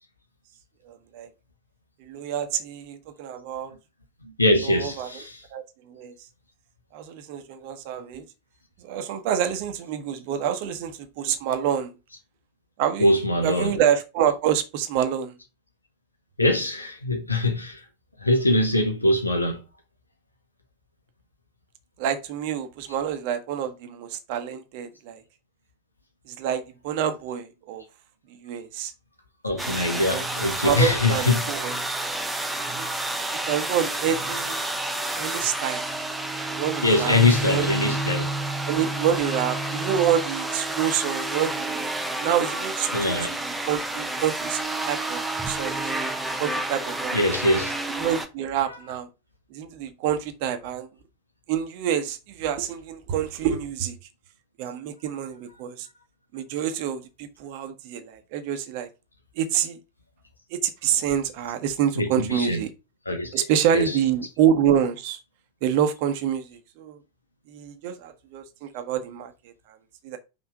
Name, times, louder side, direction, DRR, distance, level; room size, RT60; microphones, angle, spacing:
voice 1, 0.8-1.3 2.1-3.8 4.6-5.1 5.5-6.3 6.9-8.3 8.8-11.9 12.8-13.1 13.4-15.4 22.0-25.2 26.3-27.8 28.3-28.9 29.5-30.2 30.6-31.8 32.6-32.9 33.4-34.6 35.2-35.8 36.5-37.2 37.4-38.0 38.7-41.8 42.2-44.6 44.9-45.9 46.4-47.2 47.9-49.1 49.5-50.9 51.5-54.0 54.6-55.9 56.3-58.9 59.3-59.8 60.5-62.7 63.3-65.2 65.6-67.0 67.5-69.8 70.0-70.2, right 9 dB, 45° right, 1.1 m, -27 dB
voice 2, 4.4-5.4 13.0-13.8 16.4-17.8 18.2-19.6 29.4-31.7 36.8-38.3 42.9-43.3 47.1-47.7 48.6-48.8 61.9-62.6 63.1-63.3 63.7-64.1, left 2 dB, 80° left, 1.5 m, -23 dB
sound 1, 29.6-48.3, right 2 dB, 5° right, 0.9 m, -29 dB
5.8 x 3.9 x 5.1 m
figure-of-eight pair, 90°, 0 cm